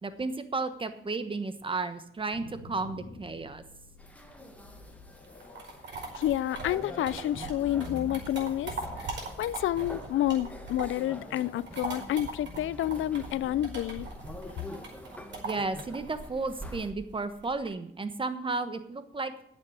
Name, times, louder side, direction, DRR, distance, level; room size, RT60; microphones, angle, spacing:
voice 1, 0.0-3.6 15.4-19.3, right 3 dB, 25° right, 1.2 m, -33 dB
sound 1, 2.0-14.9, left 3 dB, 50° left, 1.9 m, -48 dB
sound 2, 4.0-16.9, left 1 dB, 5° left, 1.6 m, -46 dB
sound 3, 5.2-11.1 11.4-17.7, right 3 dB, 60° right, 5.0 m, -40 dB
voice 2, 6.1-9.1 9.4-14.1, left 13 dB, 75° left, 0.5 m, -29 dB
9.8 x 7.7 x 8.6 m
cardioid pair, 105°, 21 cm